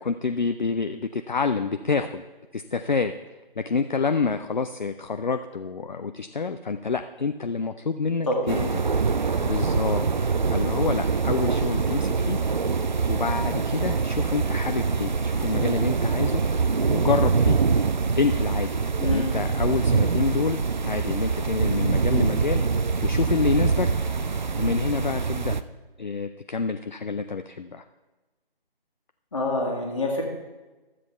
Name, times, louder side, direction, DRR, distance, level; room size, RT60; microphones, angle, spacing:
voice 1, 0.0-2.2 2.5-3.1 3.6-8.8 9.4-10.0 10.5-12.4 13.1-16.4 16.9-17.6 18.2-18.7 19.0-22.6 23.0-23.9 24.6-25.6 26.0-27.8, left 4 dB, 50° left, 8 dB, 0.5 m, -27 dB
voice 2, 8.3-8.7 19.0-19.4 29.3-30.2, left 2 dB, 35° left, 0 dB, 1.6 m, -26 dB
sound 1, 8.5-25.6, right 5 dB, 50° right, 0.5 m, -24 dB
12.5 x 7.6 x 4.4 m, 1.2 s
figure-of-eight pair, 155°, 29 cm